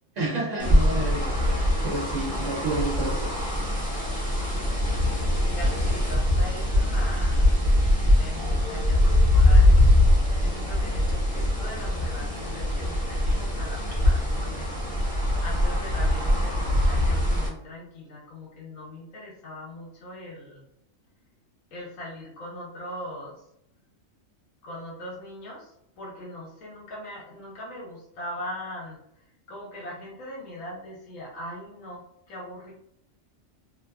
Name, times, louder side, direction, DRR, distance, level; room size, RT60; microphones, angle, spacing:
voice 1, 0.2-3.3, right 2 dB, 70° right, -4 dB, 1.2 m, -30 dB
sound 1, 0.6-17.5, left 1 dB, 5° left, 0.8 m, -22 dB
voice 2, 2.1-2.6 5.4-7.6 8.1-9.8 10.3-14.7 15.4-20.6 21.7-23.4 24.6-32.7, left 1 dB, 90° left, -4 dB, 1.4 m, -40 dB
3.6 x 2.6 x 2.3 m, 0.76 s
omnidirectional pair, 1.3 m